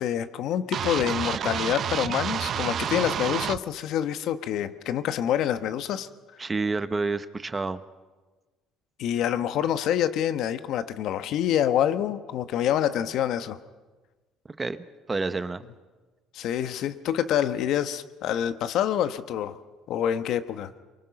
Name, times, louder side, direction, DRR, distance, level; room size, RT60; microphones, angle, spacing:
voice 1, 0.0-6.1 9.0-13.6 16.3-19.6 19.9-20.7, left 10 dB, 65° left, 11 dB, 1.1 m, -26 dB
sound 1, 0.7-3.6, right 9 dB, 50° right, 0.6 m, -29 dB
voice 2, 6.4-7.8 14.6-15.6, right 3 dB, 20° right, 12 dB, 0.9 m, -29 dB
24.0 x 23.5 x 5.9 m, 1.3 s
cardioid pair, 110°, 0 cm